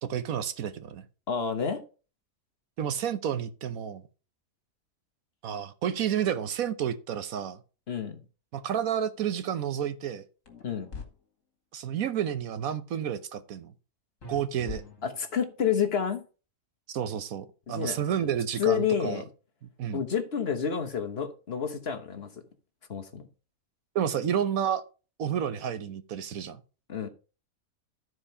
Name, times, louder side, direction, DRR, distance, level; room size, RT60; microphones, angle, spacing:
voice 1, 0.0-1.0 2.8-4.0 5.4-7.6 8.5-10.2 11.7-13.7 14.2-14.8 16.9-19.2 19.6-20.0 23.9-24.8 25.2-26.6, right 9 dB, 75° right, 1.3 m, -30 dB
voice 2, 1.3-1.8 7.9-8.2 10.6-10.9 15.0-16.2 17.7-18.0 18.6-19.2 19.9-22.3 22.9-23.3 26.9-27.1, left 7 dB, 45° left, 1.3 m, -29 dB
sound 1, 10.5-11.1 14.2-15.4, left 5 dB, 65° left, 2.3 m, -42 dB
12.5 x 4.7 x 5.4 m
omnidirectional pair, 1.5 m